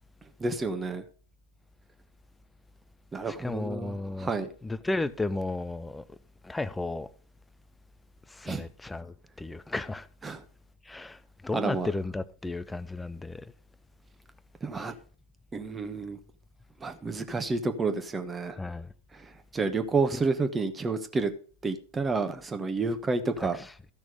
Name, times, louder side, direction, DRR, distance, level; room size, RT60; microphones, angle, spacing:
voice 1, 0.4-1.0 3.1-4.5 8.4-8.6 10.2-10.4 11.5-11.9 14.6-14.9 15.5-16.2 16.8-18.6 19.1-21.3 21.6-23.6, right 3 dB, 15° right, 1.2 m, -30 dB
voice 2, 3.3-4.3 4.6-6.0 6.4-7.1 8.3-10.1 10.9-13.5 18.6-18.9 20.1-20.2 23.4-23.5, left 2 dB, 5° left, 0.6 m, -34 dB
14.0 x 6.2 x 4.9 m
figure-of-eight pair, 90°, 0 cm